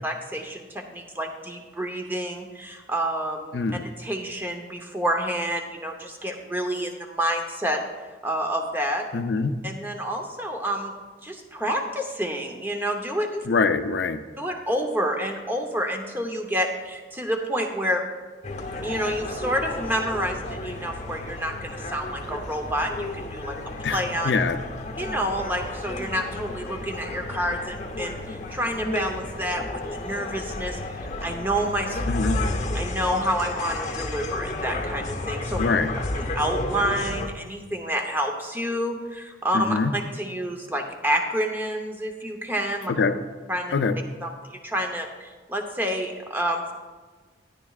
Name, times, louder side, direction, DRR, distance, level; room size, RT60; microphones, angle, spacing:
voice 1, 0.0-3.6 4.0-7.8 8.2-9.0 9.6-10.9 11.2-13.4 14.4-18.0 18.8-23.6 23.9-24.3 25.0-30.8 31.2-32.0 32.7-35.6 36.2-42.9 43.5-43.7 44.2-44.3 44.6-46.7, equal, 10° right, 3 dB, 0.7 m, -28 dB
voice 2, 3.5-3.8 9.1-9.5 13.5-14.2 23.8-24.6 32.1-32.4 35.6-35.9 39.5-39.9 42.9-43.1 43.7-44.0, left 4 dB, 70° left, 10 dB, 0.5 m, -24 dB
sound 1, 18.4-37.3, left 2 dB, 40° left, 0.8 m, -32 dB
13.0 x 9.9 x 2.4 m, 1.4 s
head